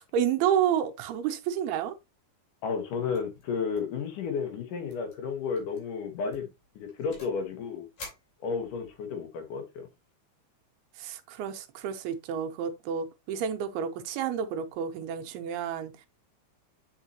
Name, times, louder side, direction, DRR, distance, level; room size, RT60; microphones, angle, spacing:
voice 1, 0.0-1.9 11.0-15.9, right 8 dB, 85° right, 2.8 m, -30 dB
voice 2, 2.6-6.5 6.8-7.9 8.4-9.9, left 5 dB, 65° left, 2.6 m, -32 dB
sound 1, 3.1-3.4 3.7-4.0 4.3-4.4 4.9-5.2 5.6-5.8 6.3-7.4 8.0-9.0, left 2 dB, 50° left, 5.6 m, -48 dB
8.2 x 5.4 x 2.9 m
omnidirectional pair, 4.4 m